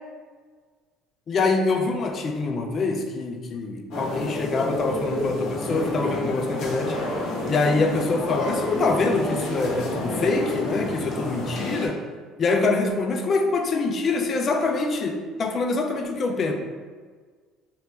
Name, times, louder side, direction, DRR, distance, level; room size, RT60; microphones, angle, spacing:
voice 1, 1.3-7.0 7.5-12.0 12.4-16.5, left 3 dB, 40° left, 4 dB, 0.4 m, -25 dB
sound 1, 3.9-11.9, left 1 dB, 65° left, 0.8 m, -29 dB
3.1 x 2.5 x 3.3 m, 1.5 s
supercardioid pair, 95°, 0 cm